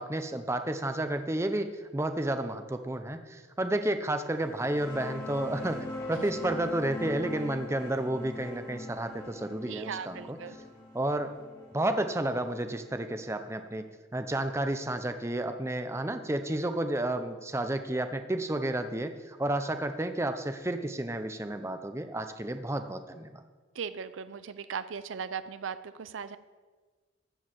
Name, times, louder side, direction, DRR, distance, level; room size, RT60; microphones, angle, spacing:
voice 1, 0.0-10.4 10.9-11.4 11.7-23.4, right 1 dB, 15° right, 8 dB, 0.6 m, -31 dB
sound 1, 4.4-13.7, left 2 dB, 20° left, 1.7 m, -42 dB
voice 2, 9.7-10.6 23.8-26.4, right 6 dB, 80° right, 14 dB, 0.5 m, -38 dB
13.5 x 4.6 x 8.5 m, 1.4 s
head